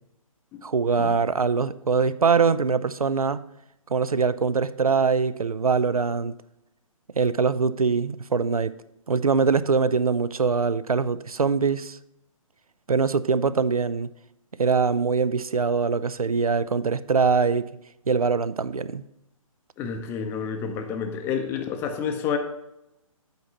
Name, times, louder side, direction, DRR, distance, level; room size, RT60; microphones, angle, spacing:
voice 1, 0.6-3.4 3.9-6.3 7.2-8.7 9.1-12.0 12.9-14.1 14.6-17.7 18.1-19.0, right 5 dB, 85° right, 15 dB, 0.4 m, -23 dB
voice 2, 19.8-22.4, left 7 dB, 15° left, 6 dB, 0.5 m, -29 dB
8.1 x 4.4 x 5.9 m, 0.86 s
figure-of-eight pair, 130°, 18 cm